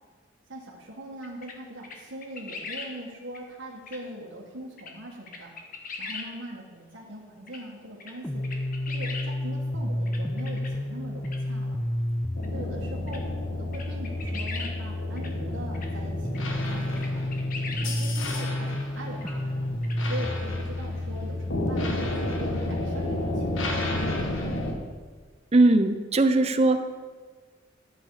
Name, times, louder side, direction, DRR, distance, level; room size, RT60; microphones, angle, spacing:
voice 1, 0.5-5.5 6.0-8.4 8.9-11.8 12.5-17.3 17.8-19.7 20.0-23.9, right 1 dB, 70° right, -3 dB, 1.7 m, -41 dB
sound 1, 1.2-1.5 1.8-2.9 3.3-3.4 3.9-4.0 4.8-4.9 5.3-6.3 7.5-7.6 8.0-8.1 8.4-9.3 10.1-10.7 11.2-11.4 12.4-12.5 13.1-13.2 13.7-14.8 15.2-15.3 15.7-15.9 16.3-16.4 16.7-16.8 17.0-17.9 19.2-19.3 19.8-20.0, left 4 dB, 45° left, 1.3 m, -39 dB
sound 2, 8.2-24.3, left 1 dB, 10° left, 0.5 m, -31 dB
sound 3, 12.4-24.7, left 1 dB, 80° left, 1.6 m, -33 dB
voice 2, 25.5-26.9, right 2 dB, 30° right, 8 dB, 0.7 m, -20 dB
12.0 x 8.1 x 4.9 m, 1.5 s
head